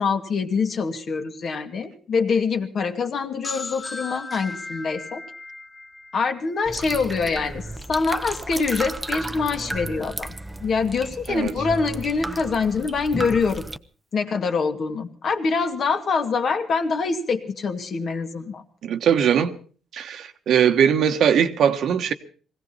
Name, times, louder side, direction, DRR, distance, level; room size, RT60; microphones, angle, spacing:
voice 1, 0.0-5.2 6.1-10.3 10.6-13.7 14.1-18.6, left 5 dB, 55° left, 2.1 m, -25 dB
sound 1, 3.4-7.1, left 3 dB, 25° left, 0.8 m, -36 dB
sound 2, 6.6-13.8, right 2 dB, 15° right, 0.8 m, -33 dB
voice 2, 18.8-19.6 19.9-22.1, right 8 dB, 70° right, 1.3 m, -20 dB
20.5 x 16.5 x 4.2 m
cardioid pair, 90°, 0 cm